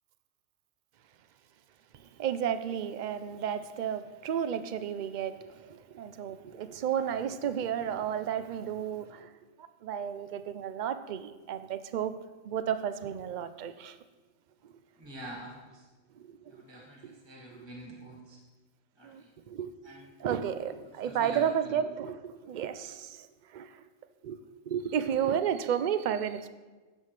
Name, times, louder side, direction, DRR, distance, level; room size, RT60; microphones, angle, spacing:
voice 1, 1.9-12.1 12.4-14.0 14.6-14.7 16.2-16.6 19.0-19.7 20.2-23.8 24.2-24.4 24.7-26.5, right 9 dB, 75° right, 0.4 m, -33 dB
voice 2, 15.0-15.9 16.5-18.4 18.9-19.3 19.8-20.2 21.0-21.8, right 1 dB, 20° right, 1.8 m, -46 dB
16.0 x 7.4 x 3.2 m
omnidirectional pair, 1.4 m